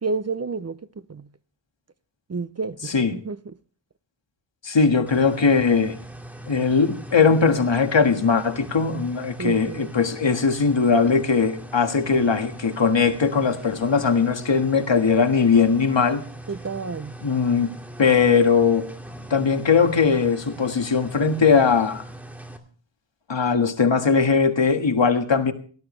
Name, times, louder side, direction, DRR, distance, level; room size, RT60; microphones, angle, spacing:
voice 1, 0.0-0.8 1.1-1.2 2.3-3.4 9.4-9.9 16.5-17.2, right 4 dB, 35° right, 0.5 m, -30 dB
voice 2, 2.8-3.2 4.6-5.9 6.5-16.2 17.2-18.9 19.3-22.0 23.3-25.5, left 5 dB, 65° left, 1.8 m, -20 dB
sound 1, 5.1-22.6, right 1 dB, 5° right, 2.1 m, -40 dB
18.5 x 13.0 x 3.2 m
wide cardioid pair, 90°, 47 cm